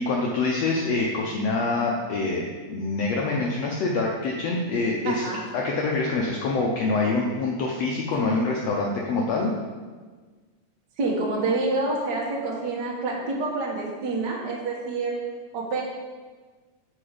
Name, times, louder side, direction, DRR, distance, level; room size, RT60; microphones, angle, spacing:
voice 1, 0.0-5.2 5.5-9.5, left 3 dB, 80° left, -1 dB, 1.4 m, -25 dB
voice 2, 5.0-5.4 11.0-15.2 15.5-15.8, right 3 dB, 55° right, -2 dB, 1.2 m, -27 dB
8.7 x 4.8 x 5.0 m, 1.4 s
omnidirectional pair, 3.8 m